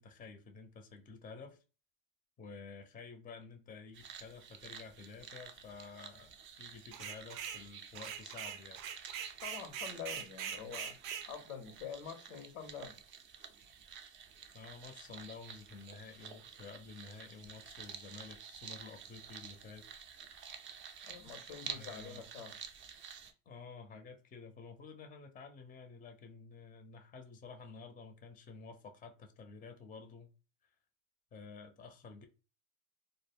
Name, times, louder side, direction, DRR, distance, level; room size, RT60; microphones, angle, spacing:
voice 1, 0.0-1.6 2.4-8.8 14.5-19.9 21.7-22.2 23.5-30.3 31.3-32.2, left 4 dB, 20° left, 0.5 m, -51 dB
sound 1, 3.9-23.3, right 7 dB, 30° right, 0.4 m, -51 dB
sound 2, 6.9-7.6 8.0-11.3, right 8 dB, 90° right, 0.5 m, -42 dB
voice 2, 9.4-11.0 11.3-13.0 21.0-22.6, left 7 dB, 90° left, 0.8 m, -46 dB
2.1 x 2.0 x 3.4 m
supercardioid pair, 95°, 39 cm